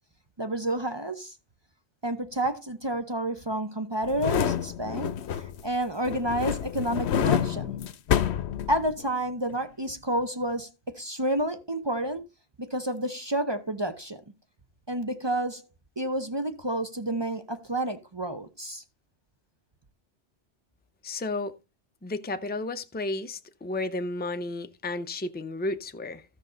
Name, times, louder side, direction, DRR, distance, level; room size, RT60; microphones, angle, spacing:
voice 1, 0.4-1.4 2.0-7.7 8.7-12.2 12.6-14.2 14.9-15.7 16.0-18.8, right 1 dB, 25° right, 0.7 m, -30 dB
sound 1, 4.0-5.7 6.1-9.1 9.5-9.6, left 9 dB, 75° left, 1.0 m, -28 dB
voice 2, 21.0-21.5 22.0-26.2, left 2 dB, 10° left, 0.5 m, -32 dB
13.0 x 6.5 x 3.8 m
omnidirectional pair, 1.1 m